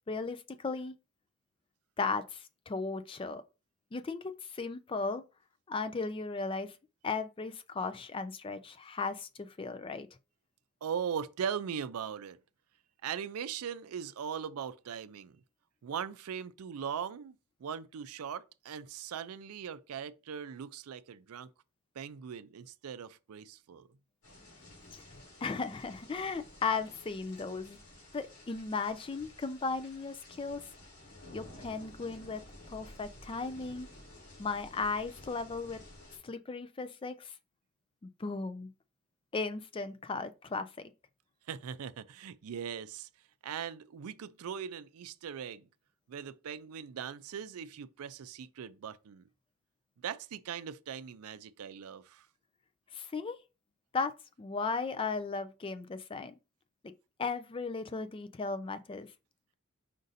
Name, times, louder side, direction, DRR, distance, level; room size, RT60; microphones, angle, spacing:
voice 1, 0.1-0.9 2.0-3.4 3.9-5.2 5.7-6.8 7.0-10.1 24.9-25.0 25.4-27.8 28.1-30.6 31.3-33.9 34.4-35.8 36.2-37.3 38.2-38.7 39.3-40.9 52.9-53.4 53.9-56.4 57.2-59.1, left 4 dB, 25° left, 0.3 m, -36 dB
voice 2, 10.8-12.4 13.0-15.4 15.8-21.5 22.0-23.9 41.5-43.1 43.4-45.7 46.1-49.3 50.0-52.3, right 7 dB, 80° right, 0.4 m, -40 dB
sound 1, 24.2-36.2, left 1 dB, 85° left, 2.9 m, -53 dB
5.1 x 2.6 x 4.0 m
head